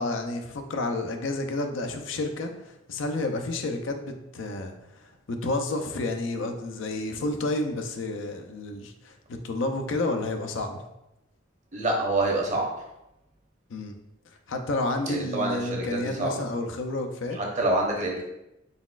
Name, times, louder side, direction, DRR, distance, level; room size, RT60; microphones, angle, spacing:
voice 1, 0.0-9.2 9.4-10.8 13.7-13.9 14.5-17.4, left 2 dB, 75° left, 5 dB, 0.5 m, -30 dB
voice 2, 11.7-12.7 15.1-15.6 15.9-16.4 17.3-18.2, right 2 dB, 40° right, 0 dB, 0.8 m, -26 dB
4.1 x 4.0 x 2.4 m, 0.88 s
head